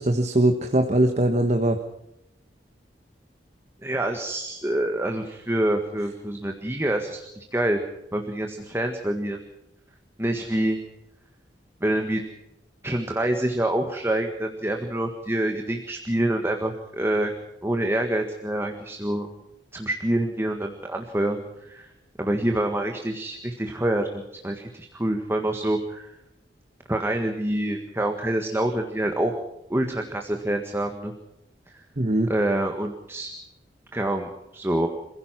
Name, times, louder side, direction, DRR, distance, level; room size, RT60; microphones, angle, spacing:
voice 1, 0.0-1.8 32.0-32.3, right 1 dB, 40° right, 6 dB, 1.4 m, -21 dB
voice 2, 3.8-7.8 8.1-9.4 10.2-10.8 11.8-12.2 12.8-17.3 17.6-19.3 19.7-21.4 21.7-21.9 22.2-26.1 26.9-29.3 29.7-31.1 32.3-33.3 33.9-34.9, right 1 dB, 15° right, 3 dB, 1.7 m, -26 dB
27.5 x 16.0 x 6.0 m, 0.88 s
head